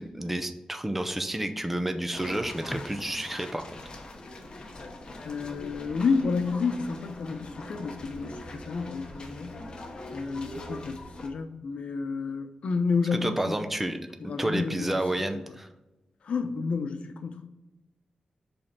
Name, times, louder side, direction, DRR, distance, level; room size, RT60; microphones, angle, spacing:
voice 1, 0.0-3.6 13.1-14.0 14.4-15.7, right 1 dB, 10° right, 7 dB, 0.5 m, -30 dB
sound 1, 2.1-11.3, left 1 dB, 45° left, 1.0 m, -42 dB
voice 2, 5.2-9.6 10.1-13.6 14.2-14.9 16.2-17.5, left 4 dB, 70° left, 7 dB, 0.7 m, -30 dB
5.4 x 4.3 x 5.9 m, 1.0 s
wide cardioid pair, 165°, 2 cm